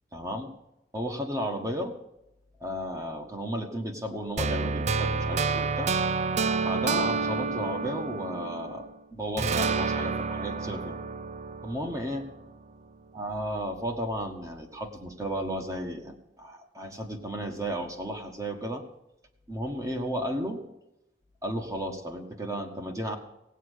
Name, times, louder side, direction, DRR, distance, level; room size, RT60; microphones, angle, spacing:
voice 1, 0.1-0.5 0.9-2.0 2.6-5.9 6.6-11.0 11.6-12.3 13.1-18.8 19.5-20.7 21.4-23.2, equal, 20° right, 3 dB, 1.6 m, -33 dB
sound 1, 4.4-8.9 9.4-12.5, right 4 dB, 40° right, 0.5 m, -29 dB
16.5 x 8.7 x 6.6 m, 0.88 s
head